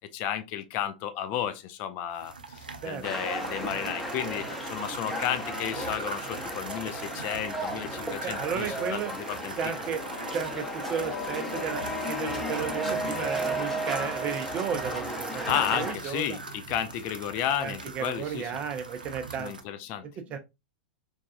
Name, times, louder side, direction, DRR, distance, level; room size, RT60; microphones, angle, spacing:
voice 1, 0.1-9.6 15.5-18.5 19.4-20.4, left 10 dB, 40° left, 0.4 m, -33 dB
sound 1, 2.1-19.6, right 4 dB, 80° right, 0.4 m, -41 dB
sound 2, 3.0-15.9, equal, 5° left, 0.7 m, -34 dB
voice 2, 8.2-9.1 9.6-10.0 10.3-16.4 17.6-19.5 20.3-20.4, right 7 dB, 30° right, 0.5 m, -33 dB
3.3 x 2.3 x 2.4 m
figure-of-eight pair, 95°, 5 cm